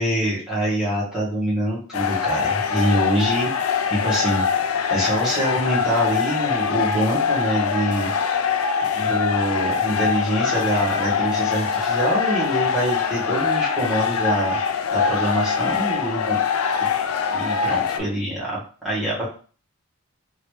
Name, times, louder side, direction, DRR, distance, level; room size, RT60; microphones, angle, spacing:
voice 1, 0.0-4.4 4.9-8.1 8.9-14.6 14.9-16.4 16.8-16.9 17.3-19.3, right 1 dB, ahead, -9 dB, 1.6 m, -25 dB
sound 1, 1.9-18.0, left 6 dB, 75° left, 0.4 m, -23 dB
3.0 x 2.9 x 3.1 m, 0.39 s
head